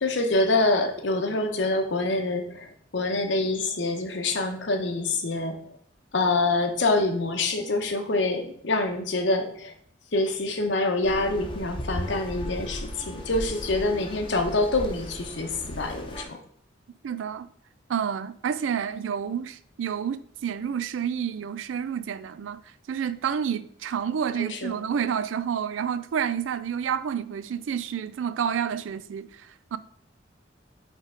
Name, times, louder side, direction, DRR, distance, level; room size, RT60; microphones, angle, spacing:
voice 1, 0.0-5.6 6.1-9.7 10.1-16.4 24.4-24.8, left 2 dB, 65° left, 0.9 m, -26 dB
sound 1, 11.0-16.3, equal, 25° left, 0.8 m, -36 dB
voice 2, 17.0-17.5 17.9-22.6 22.9-29.8, right 8 dB, 90° right, 0.4 m, -29 dB
5.5 x 3.5 x 4.9 m
head